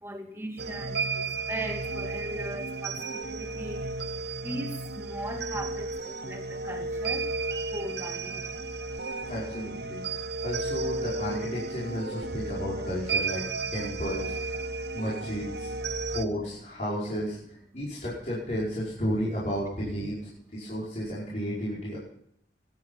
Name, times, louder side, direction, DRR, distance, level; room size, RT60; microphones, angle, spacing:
voice 1, 0.0-3.8 4.4-7.3 7.7-8.4, right 1 dB, 15° right, 2 dB, 2.4 m, -39 dB
sound 1, 0.6-16.2, right 3 dB, 75° right, 1.0 m, -33 dB
voice 2, 9.2-13.4 13.7-14.6 14.9-15.7 16.1-22.0, equal, 40° left, -8 dB, 5.1 m, -33 dB
21.5 x 11.0 x 5.7 m, 0.71 s
head